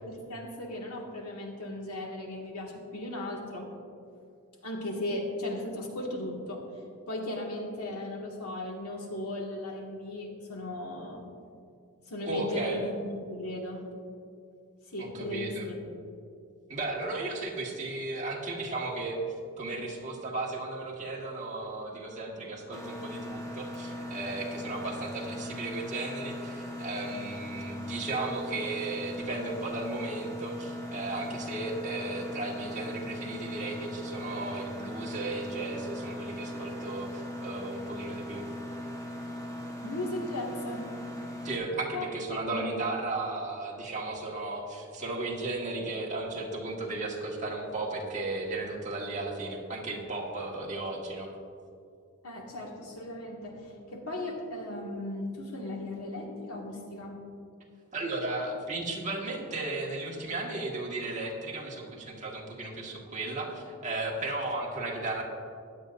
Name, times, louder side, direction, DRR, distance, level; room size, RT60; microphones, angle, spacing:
voice 1, 0.0-3.7 4.6-6.6 7.1-11.2 12.1-13.8 14.9-15.8 39.8-40.9 41.9-42.7 52.2-57.2, left 1 dB, 85° left, -1 dB, 2.0 m, -37 dB
voice 2, 12.2-12.8 15.0-15.7 16.7-19.2 19.6-38.4 41.4-51.3 57.9-65.2, right 2 dB, 35° right, -2 dB, 1.7 m, -35 dB
Mechanisms, 22.7-41.6, left 1 dB, 15° left, 1.2 m, -39 dB
16.0 x 10.5 x 2.6 m, 2.4 s
head